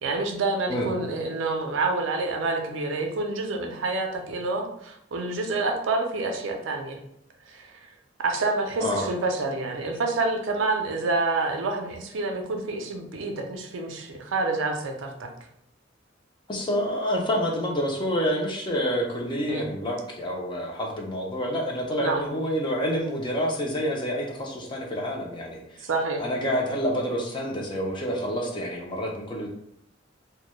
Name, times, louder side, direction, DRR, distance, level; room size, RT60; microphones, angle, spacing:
voice 1, 0.0-7.0 7.5-7.9 8.2-15.3 19.5-19.6 22.0-22.2 25.8-26.2, right 3 dB, 70° right, 3 dB, 0.4 m, -28 dB
voice 2, 16.5-25.9 26.2-29.5, equal, 25° left, -1 dB, 0.4 m, -28 dB
2.2 x 2.0 x 2.9 m, 0.74 s
head